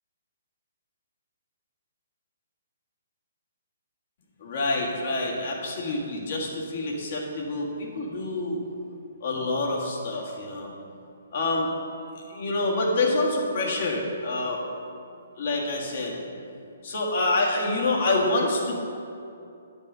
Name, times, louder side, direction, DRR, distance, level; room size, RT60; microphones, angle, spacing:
voice 1, 4.4-8.6 9.2-10.7 11.3-11.7 12.3-14.6 15.4-16.2 16.8-18.8, left 2 dB, 55° left, -2 dB, 1.7 m, -27 dB
8.9 x 5.3 x 5.5 m, 2.7 s
hypercardioid pair, 150°, 0 cm